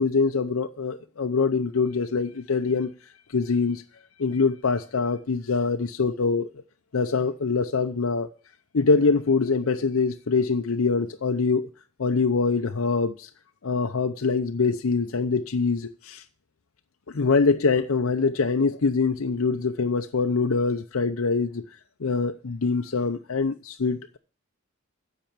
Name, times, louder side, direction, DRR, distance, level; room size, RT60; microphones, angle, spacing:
voice 1, 0.0-2.9 3.3-3.8 4.2-6.5 6.9-8.3 8.7-11.7 12.0-13.3 13.6-16.2 17.1-21.6 22.0-24.2, left 4 dB, 75° left, 0.7 m, -24 dB
10.0 x 6.9 x 9.1 m
head